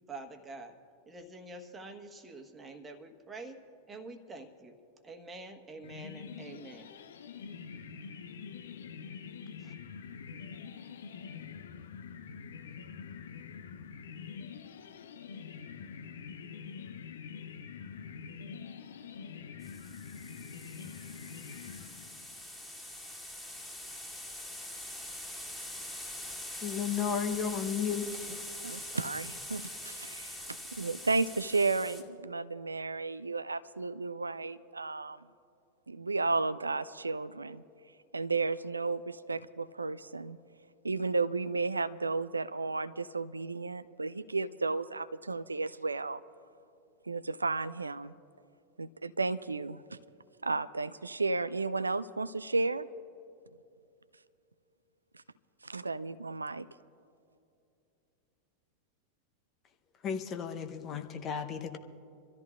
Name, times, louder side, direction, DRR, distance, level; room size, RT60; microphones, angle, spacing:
voice 1, 0.1-0.8 1.1-3.6 3.9-4.8 5.0-6.9 9.6-9.7, right 2 dB, 20° right, 7 dB, 1.3 m, -46 dB
sound 1, 5.8-22.4, left 6 dB, 60° left, 0.7 m, -45 dB
sound 2, 19.6-32.0, left 1 dB, 5° left, 2.1 m, -43 dB
voice 2, 26.6-28.4 60.0-61.8, left 7 dB, 30° left, 6 dB, 0.8 m, -34 dB
voice 3, 28.6-35.2 35.9-37.6 38.1-40.4 40.8-46.2 47.1-48.1 48.8-50.0 50.4-52.9 55.6-56.7, right 3 dB, 80° right, 15 dB, 0.3 m, -33 dB
27.0 x 14.0 x 2.5 m, 2.7 s
figure-of-eight pair, 90°, 0 cm